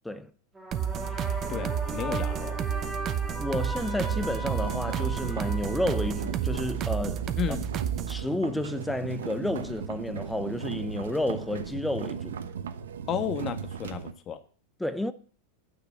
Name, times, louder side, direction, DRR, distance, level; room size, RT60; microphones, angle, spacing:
sound 1, 0.5-6.9, equal, 10° right, 2.5 m, -38 dB
sound 2, 0.7-8.2, right 9 dB, 35° right, 0.8 m, -31 dB
voice 1, 1.5-2.6 7.4-7.7 13.1-14.4, left 8 dB, 35° left, 1.3 m, -33 dB
voice 2, 3.4-7.2 8.1-12.4 14.8-15.1, left 1 dB, 5° left, 0.6 m, -31 dB
sound 3, 4.0-14.1, right 7 dB, 90° right, 1.0 m, -37 dB
9.3 x 6.1 x 8.1 m
hypercardioid pair, 120°, 0 cm